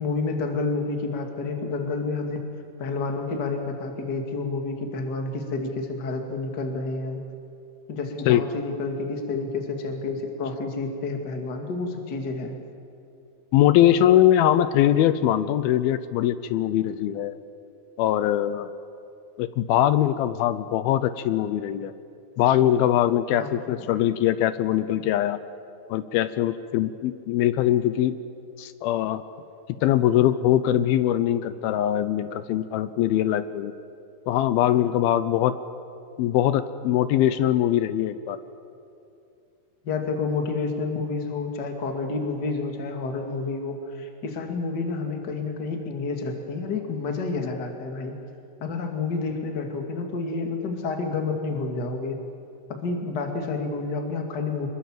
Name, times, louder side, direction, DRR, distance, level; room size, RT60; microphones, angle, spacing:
voice 1, 0.0-2.4 2.8-7.2 7.9-12.6 23.4-23.9 39.8-48.1 48.6-52.2 52.8-54.7, left 3 dB, 35° left, 4 dB, 2.1 m, -29 dB
voice 2, 13.5-17.4 18.0-18.7 19.4-21.9 22.4-25.4 25.9-28.2 28.6-29.2 29.8-33.7 34.3-35.6 36.2-38.4, left 12 dB, 80° left, 13 dB, 2.5 m, -22 dB
26.0 x 22.0 x 7.5 m, 2.5 s
omnidirectional pair, 4.5 m